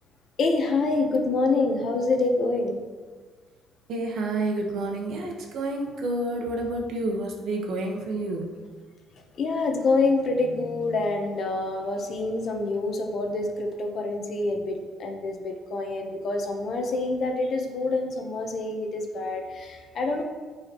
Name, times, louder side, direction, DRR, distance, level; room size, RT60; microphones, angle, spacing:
voice 1, 0.4-2.8 9.4-20.2, left 3 dB, 45° left, 3 dB, 1.0 m, -26 dB
voice 2, 3.9-8.5, right 2 dB, 60° right, 1 dB, 1.3 m, -29 dB
14.0 x 4.9 x 3.1 m, 1.5 s
cardioid pair, 155°, 0 cm